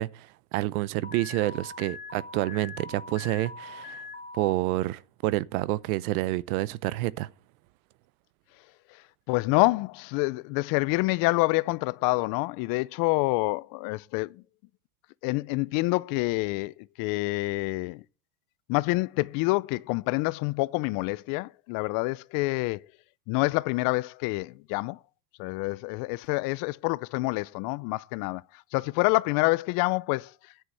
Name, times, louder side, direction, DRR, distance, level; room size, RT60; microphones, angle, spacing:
voice 1, 0.0-4.0 4.4-7.3, right 18 dB, 75° right, 0.7 m, -28 dB
Alarm, 1.0-4.5, left 4 dB, 20° left, 2.0 m, -42 dB
voice 2, 9.3-14.4 15.2-18.0 18.7-22.8 23.3-25.0 25.4-28.4 28.7-30.3, left 23 dB, 50° left, 0.5 m, -27 dB
10.0 x 7.8 x 7.8 m
supercardioid pair, 125°, 45 cm